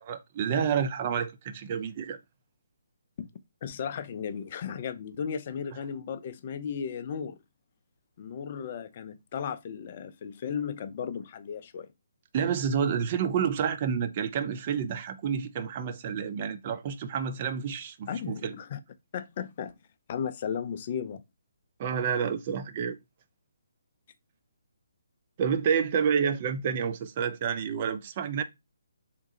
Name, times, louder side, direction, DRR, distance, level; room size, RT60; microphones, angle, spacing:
voice 1, 0.1-2.2 12.3-18.5 21.8-23.0 25.4-28.4, right 7 dB, 35° right, 0.4 m, -29 dB
voice 2, 3.6-7.4 8.2-11.9 18.1-18.8 19.1-19.7 20.1-21.2, left 7 dB, 35° left, 0.4 m, -35 dB
3.5 x 2.9 x 2.7 m
figure-of-eight pair, 140°, 0 cm